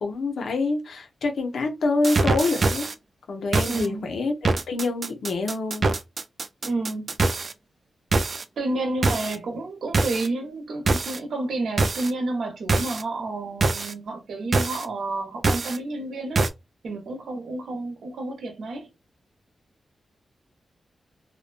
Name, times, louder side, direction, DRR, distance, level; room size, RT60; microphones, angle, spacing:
voice 1, 0.0-2.9 3.3-5.9, left 3 dB, 80° left, 0.6 m, -26 dB
sound 1, 2.0-2.9 3.5-3.9 4.4-7.5 8.1-8.4 9.0-9.4 9.9-10.3 10.9-11.2 11.8-12.1 12.7-13.0 13.6-13.9 14.5-14.8 15.4-15.8 16.4-16.5, right 3 dB, 55° right, 0.3 m, -23 dB
voice 2, 3.7-4.2 6.6-7.2 8.6-16.4 16.8-18.9, right 2 dB, 85° right, 0.7 m, -30 dB
2.5 x 2.1 x 2.4 m
cardioid pair, 75°, 0 cm